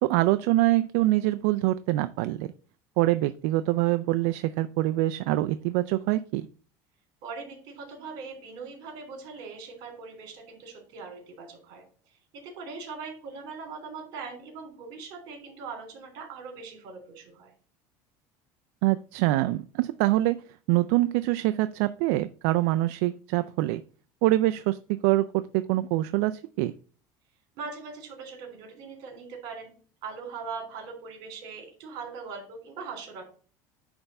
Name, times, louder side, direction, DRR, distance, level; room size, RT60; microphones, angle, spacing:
voice 1, 0.0-2.5 3.0-6.5 18.8-20.4 20.7-23.8 24.2-26.7, right 17 dB, 75° right, 11 dB, 0.4 m, -25 dB
voice 2, 7.2-11.8 12.3-17.5 27.5-29.7 30.0-33.2, right 5 dB, 50° right, 3 dB, 3.3 m, -41 dB
9.7 x 3.5 x 5.3 m, 0.41 s
cardioid pair, 170°, 9 cm